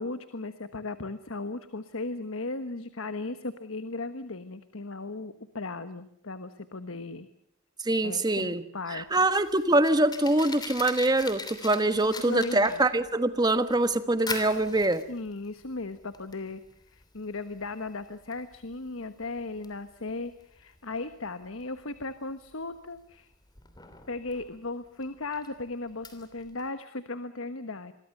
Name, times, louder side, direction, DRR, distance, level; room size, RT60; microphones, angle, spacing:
voice 1, 0.0-7.3 8.0-9.2 12.0-12.8 15.1-16.6 16.9-23.3 24.1-27.9, left 3 dB, 70° left, 11 dB, 1.3 m, -37 dB
voice 2, 7.8-8.6 8.9-15.0, right 2 dB, 20° right, 11 dB, 1.3 m, -24 dB
Fire, 9.0-26.7, left 4 dB, 20° left, 2.9 m, -43 dB
27.5 x 22.5 x 6.7 m, 0.73 s
head